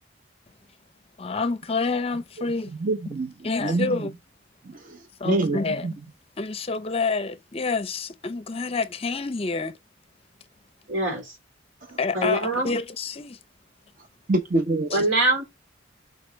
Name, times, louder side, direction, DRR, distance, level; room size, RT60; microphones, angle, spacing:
voice 1, 1.2-2.7 3.4-4.1 5.2-5.9 6.4-9.8 12.0-13.4 14.9-15.0, left 4 dB, 30° left, 0.5 m, -28 dB
voice 2, 2.8-3.3 3.6-4.0 4.7-5.0 5.2-5.9 11.9-12.0 14.3-15.0, right 2 dB, 40° right, 0.7 m, -25 dB
voice 3, 10.9-11.3 12.1-12.7 14.9-15.5, right 2 dB, 80° right, 3.3 m, -23 dB
6.6 x 4.0 x 5.0 m
head